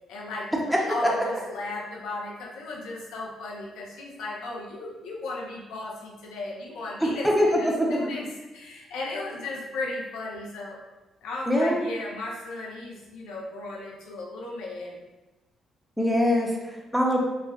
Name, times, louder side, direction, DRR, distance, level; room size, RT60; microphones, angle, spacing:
voice 1, 0.1-8.3 8.5-10.8 11.2-15.0, left 2 dB, 90° left, -2 dB, 0.6 m, -36 dB
voice 2, 7.0-7.9 11.5-11.9 16.0-17.2, equal, ahead, -2 dB, 0.6 m, -23 dB
3.1 x 2.4 x 2.3 m, 1.1 s
cardioid pair, 90°, 0 cm